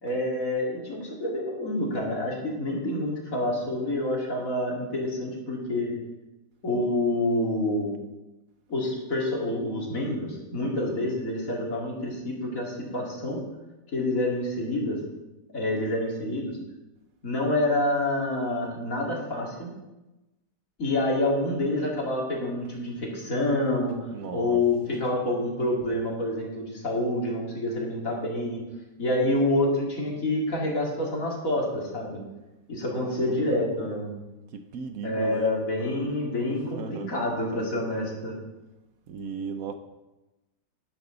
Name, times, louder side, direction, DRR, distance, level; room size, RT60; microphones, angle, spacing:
voice 1, 0.0-5.9 6.6-7.9 8.7-13.4 13.9-15.0 15.5-16.6 17.2-19.7 20.8-28.6 29.0-32.2 32.7-34.1 35.0-38.4, left 1 dB, 55° left, -2 dB, 3.1 m, -27 dB
voice 2, 24.1-24.6 33.0-33.6 34.5-35.5 36.5-37.1 39.1-39.7, right 6 dB, 65° right, 8 dB, 1.1 m, -36 dB
12.5 x 11.0 x 3.9 m, 1.0 s
omnidirectional pair, 1.7 m